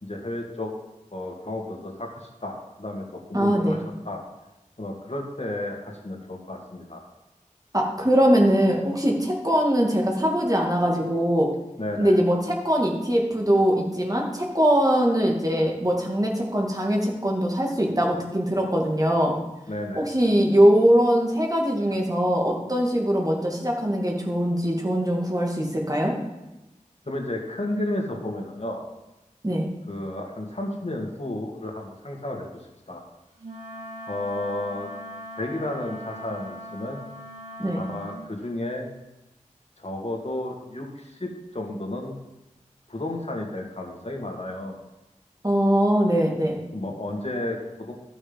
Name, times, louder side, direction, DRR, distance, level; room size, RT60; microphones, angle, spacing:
voice 1, 0.0-0.7 1.1-3.8 4.0-4.2 4.8-7.0 11.8-12.2 19.7-20.1 27.1-28.9 29.9-32.5 32.9-33.0 34.1-34.9 35.4-37.0 37.8-38.9 39.8-42.2 42.9-44.8 46.7-47.9, left 1 dB, 55° left, 0 dB, 2.2 m, -32 dB
voice 2, 3.3-3.8 7.7-11.5 12.0-19.3 20.0-26.1 29.4-29.7 37.6-37.8 45.4-46.6, equal, 30° right, -1 dB, 2.3 m, -22 dB
Wind instrument woodwind instrument, 33.4-38.2, equal, 65° right, 3.4 m, -40 dB
13.0 x 6.3 x 5.3 m, 1.0 s
wide cardioid pair, 50°, 13 cm